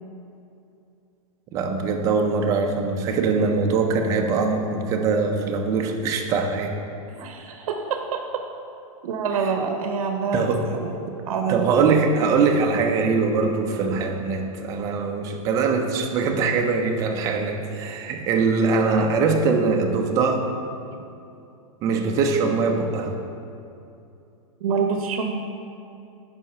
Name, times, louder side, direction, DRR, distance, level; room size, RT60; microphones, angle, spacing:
voice 1, 1.5-6.7 10.3-10.7 11.1-11.2 11.5-20.5 21.8-23.1, right 4 dB, 20° right, 3 dB, 0.4 m, -22 dB
voice 2, 7.1-8.2 9.0-10.5 10.8-10.9 11.3-12.0 24.6-25.3, right 5 dB, 70° right, 4 dB, 0.6 m, -26 dB
5.3 x 4.9 x 5.4 m, 2.7 s
supercardioid pair, 160°, 19 cm